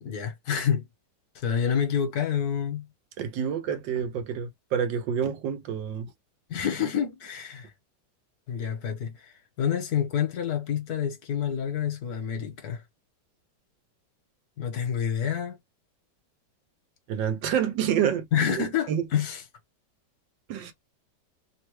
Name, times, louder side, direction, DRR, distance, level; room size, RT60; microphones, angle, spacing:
voice 1, 0.0-0.9 1.3-2.9 6.5-7.7 8.5-9.1 9.6-12.8 14.6-15.6 18.3-19.4, left 8 dB, 60° left, 1.4 m, -28 dB
voice 2, 3.2-6.1 17.1-18.3 18.5-18.6 18.9-19.0 20.5-20.7, right 8 dB, 85° right, 1.4 m, -28 dB
3.4 x 2.2 x 3.1 m
omnidirectional pair, 1.9 m